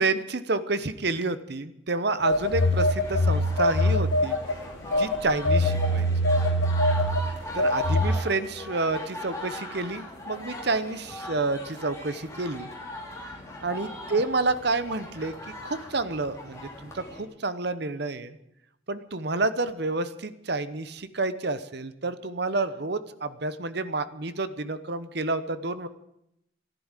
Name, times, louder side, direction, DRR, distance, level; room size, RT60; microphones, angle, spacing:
voice 1, 0.0-4.4 5.0-6.1 7.5-12.7 13.6-18.4 18.9-25.9, right 3 dB, 55° right, 13 dB, 0.9 m, -29 dB
Telephone, 2.2-4.5 4.9-8.1, left 1 dB, 65° left, 1.2 m, -23 dB
sound 1, 2.3-17.2, left 1 dB, 15° left, 3.1 m, -39 dB
13.5 x 11.0 x 9.0 m, 0.80 s
head